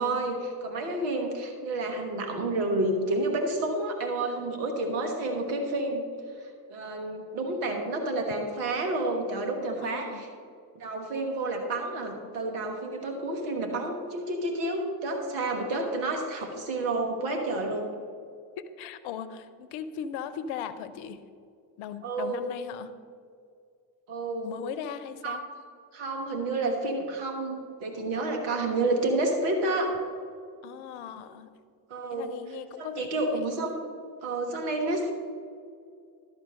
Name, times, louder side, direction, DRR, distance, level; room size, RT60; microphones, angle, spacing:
voice 1, 0.0-6.1 6.7-10.3 10.7-17.9 22.0-22.4 24.1-24.5 25.2-25.5 25.9-30.0 31.9-32.3 32.8-33.7 34.2-35.1, right 2 dB, 85° right, 3 dB, 1.5 m, -30 dB
voice 2, 9.8-10.2 18.6-21.2 21.8-22.9 24.4-25.4 30.6-31.5 32.1-33.5, left 8 dB, 80° left, 12 dB, 0.8 m, -38 dB
12.0 x 4.4 x 7.4 m, 2.3 s
hypercardioid pair, 45°, 47 cm